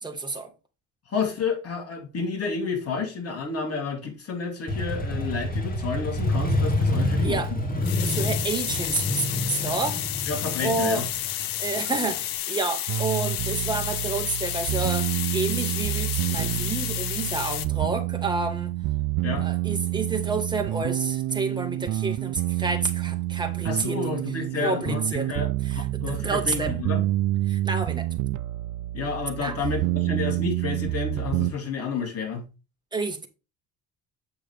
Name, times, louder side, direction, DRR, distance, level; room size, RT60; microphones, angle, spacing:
voice 1, 0.0-0.5 7.2-7.5 8.0-10.0 10.6-11.0 11.6-18.7 19.4-24.2 24.6-25.4 25.7-26.7 27.5-28.1 29.4-29.6 32.9-33.3, right 3 dB, 15° right, 1.6 m, -29 dB
voice 2, 1.1-7.4 10.3-11.0 19.2-19.5 23.6-27.0 28.9-32.4, left 5 dB, 45° left, 3.1 m, -30 dB
Motorcycle, 4.7-12.3, left 1 dB, 25° left, 2.2 m, -27 dB
sound 1, 7.8-17.7, left 13 dB, 80° left, 0.8 m, -31 dB
sound 2, 12.9-31.5, right 15 dB, 65° right, 0.5 m, -28 dB
7.7 x 6.4 x 3.5 m
cardioid pair, 120°, 33 cm